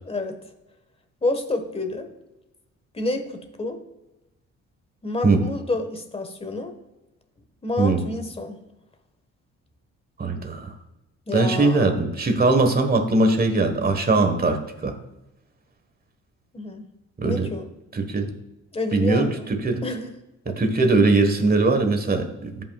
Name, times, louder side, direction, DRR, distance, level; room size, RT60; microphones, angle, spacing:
voice 1, 0.0-0.4 1.2-2.1 2.9-3.8 5.0-6.7 7.6-8.6 11.3-11.9 16.5-16.8 17.2-17.7 18.7-19.5 19.8-20.1 20.5-20.6 22.6-22.7, left 2 dB, 20° left, 6 dB, 1.4 m, -29 dB
voice 2, 7.8-8.1 10.2-10.7 11.3-14.9 17.2-17.5 17.9-18.3 18.9-19.8 20.5-22.6, right 3 dB, 30° right, 6 dB, 1.4 m, -21 dB
14.0 x 5.7 x 2.4 m, 0.98 s
cardioid pair, 90°, 30 cm